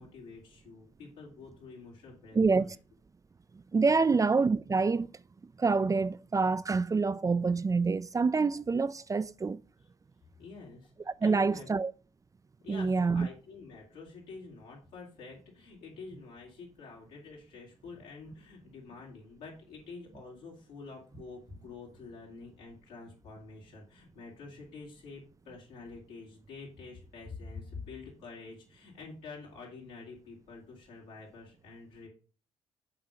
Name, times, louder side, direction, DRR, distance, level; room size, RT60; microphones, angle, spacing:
voice 1, 0.0-2.7 4.0-4.2 10.4-11.7 12.6-32.1, left 4 dB, 85° left, 3.1 m, -48 dB
voice 2, 2.3-2.7 3.5-5.1 5.6-9.6 11.2-11.9 12.7-13.3, right 4 dB, 25° right, 0.4 m, -27 dB
7.6 x 3.9 x 5.6 m
hypercardioid pair, 55°, 13 cm